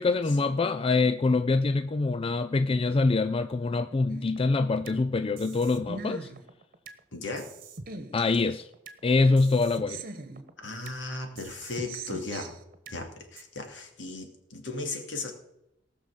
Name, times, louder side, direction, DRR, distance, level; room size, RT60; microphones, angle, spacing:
voice 1, 0.0-6.3 8.1-8.7 9.0-10.0, left 3 dB, 30° left, 0.4 m, -25 dB
sound 1, 4.1-5.0 5.4-7.0 7.4-9.0 9.4-11.0 11.4-13.0 13.4-13.5, right 3 dB, 50° right, 1.3 m, -42 dB
voice 2, 7.1-7.5 10.6-12.5 12.9-15.3, left 3 dB, 70° left, 2.7 m, -36 dB
18.5 x 6.3 x 7.2 m
head